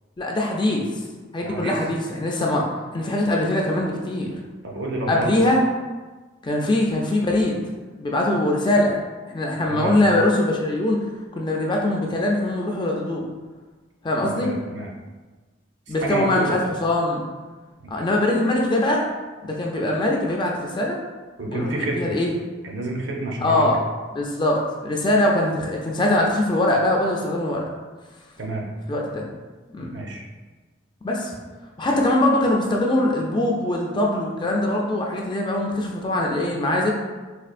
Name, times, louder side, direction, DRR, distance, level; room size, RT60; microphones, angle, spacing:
voice 1, 0.2-1.0 1.3-2.7 2.9-4.4 5.1-5.6 6.4-7.6 8.0-9.0 9.3-11.0 11.4-13.2 14.0-14.5 15.9-17.2 17.9-19.0 19.4-21.0 21.4-22.3 23.4-23.8 24.1-27.7 28.9-29.2 29.7-29.9 31.0-31.3 31.8-36.9, left 1 dB, 25° left, -1 dB, 0.4 m, -22 dB
voice 2, 1.4-1.7 4.6-5.3 9.7-10.0 14.2-14.9 15.9-16.6 17.8-17.9 21.4-22.2 22.6-23.8 28.4-28.6 29.9-30.2, right 2 dB, 60° right, -1 dB, 0.6 m, -29 dB
4.3 x 2.4 x 2.5 m, 1.3 s
head